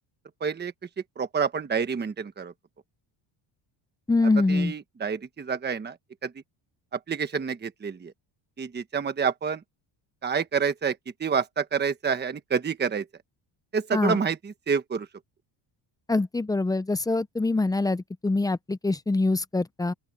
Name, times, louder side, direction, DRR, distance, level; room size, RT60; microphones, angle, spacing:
voice 1, 0.4-0.7 1.2-2.5 4.5-6.0 6.2-6.3 6.9-8.1 8.6-9.6 10.2-13.1 13.7-15.1, right 6 dB, 20° right, 1.3 m, -28 dB
voice 2, 4.1-4.7 13.9-14.2 16.1-19.9, left 3 dB, 10° left, 0.4 m, -24 dB
open air
cardioid pair, 140°, 48 cm